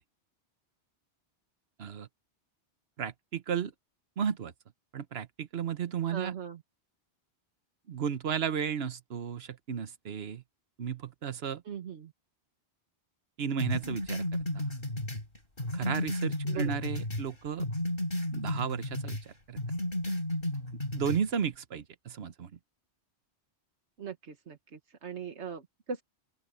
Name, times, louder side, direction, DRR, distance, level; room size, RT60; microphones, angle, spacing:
voice 1, 3.0-3.7 4.2-4.5 4.9-6.3 7.9-10.4 10.8-11.6 13.4-14.2 14.5-14.7 15.7-17.7 18.3-19.6 20.9-22.5, right 7 dB, 65° right, 1.2 m, -34 dB
voice 2, 6.1-6.6 11.6-12.1 16.4-16.8 24.0-26.0, right 7 dB, 85° right, 1.6 m, -40 dB
sound 1, 13.6-17.3 17.6-19.2 19.6-21.2, left 1 dB, 55° left, 4.3 m, -33 dB
open air
omnidirectional pair, 1.1 m